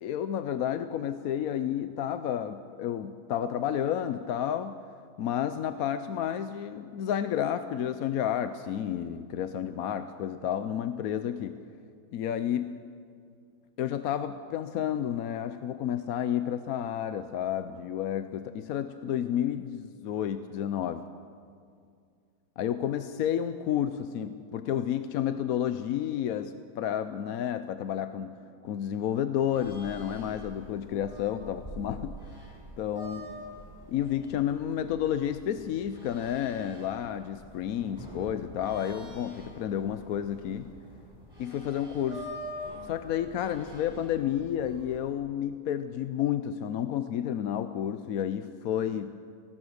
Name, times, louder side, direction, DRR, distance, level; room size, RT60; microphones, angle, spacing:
voice 1, 0.0-4.8 5.2-11.6 12.1-12.8 13.8-21.0 22.6-28.4 28.6-32.2 32.8-33.3 33.9-40.7 41.4-42.3 42.8-49.1, left 10 dB, 65° left, 10 dB, 1.0 m, -31 dB
sound 1, 29.5-45.1, equal, 15° right, 6.5 m, -46 dB
23.0 x 18.5 x 6.4 m, 2.3 s
omnidirectional pair, 1.8 m